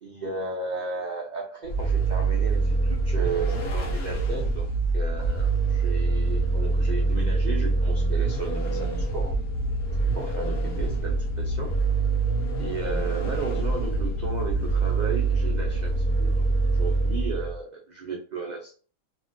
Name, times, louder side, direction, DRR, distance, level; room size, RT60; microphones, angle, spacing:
voice 1, 0.0-4.7 4.9-9.4 10.1-11.8 12.6-16.3 16.7-18.7, right 4 dB, 75° right, -1 dB, 0.4 m, -34 dB
Vehicle, 1.6-17.6, right 3 dB, 85° left, 1.2 m, -25 dB
2.9 x 2.5 x 2.5 m, 0.39 s
omnidirectional pair, 1.5 m